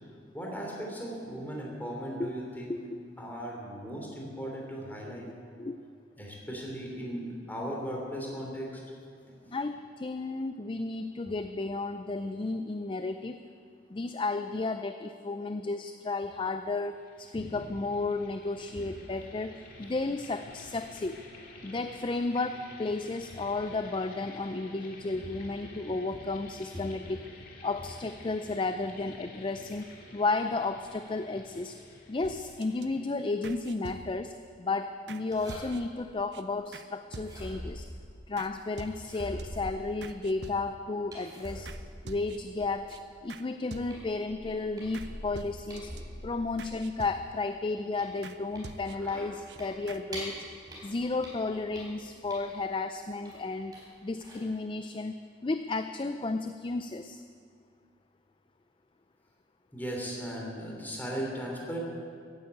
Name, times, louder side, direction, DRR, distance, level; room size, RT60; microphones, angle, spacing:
voice 1, 0.3-2.8 3.2-5.3 6.2-8.8 9.4-9.5 17.3-17.6 25.1-25.2 26.1-26.2 26.7-26.8 48.8-49.3 59.7-61.8, equal, 10° left, -2 dB, 3.2 m, -37 dB
voice 2, 2.7-3.0 5.6-5.8 9.5-13.4 13.9-21.2 21.6-27.2 27.6-31.8 32.1-34.3 34.6-37.9 38.3-41.7 42.0-43.0 43.2-45.9 46.2-50.4 50.8-53.7 54.0-55.2 55.4-57.2, left 3 dB, 25° left, 9 dB, 0.4 m, -33 dB
sound 1, 16.8-33.5, left 2 dB, 50° left, 2.2 m, -51 dB
sound 2, 32.2-32.8 33.4-34.4 35.1-35.2 35.5-36.0 36.3-36.4 36.7-36.9 37.1-37.7 38.4-38.5 38.8-39.4 40.0-40.9 41.6-41.8 42.1-42.6 42.9-43.0 43.3-43.4 43.7-44.2 44.9-45.1 45.3-46.0 46.6-47.5 48.2-48.4 48.6-49.2 49.5-49.6 49.9-50.0, right 3 dB, 65° right, 0.7 m, -46 dB
sound 3, 35.3-36.0 37.1-38.4 38.9-40.2 41.1-43.1 43.5-43.6 43.9-46.8 47.2-50.4 50.7-52.7 53.3-53.9 54.2-54.4, equal, 20° right, 4.4 m, -44 dB
15.0 x 10.5 x 8.3 m, 2.2 s
head